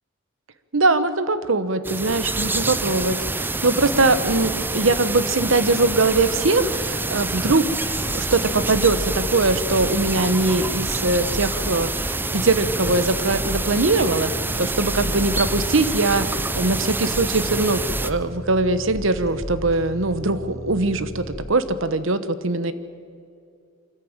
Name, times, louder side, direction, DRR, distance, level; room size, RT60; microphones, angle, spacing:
voice 1, 0.7-7.7 8.1-14.3 14.6-22.7, right 2 dB, 70° right, 13 dB, 1.1 m, -21 dB
sound 1, 1.8-18.1, right 3 dB, 10° right, 0.5 m, -27 dB
sound 2, 7.8-21.3, equal, 15° left, 4.9 m, -34 dB
24.5 x 14.0 x 8.8 m, 2.3 s
head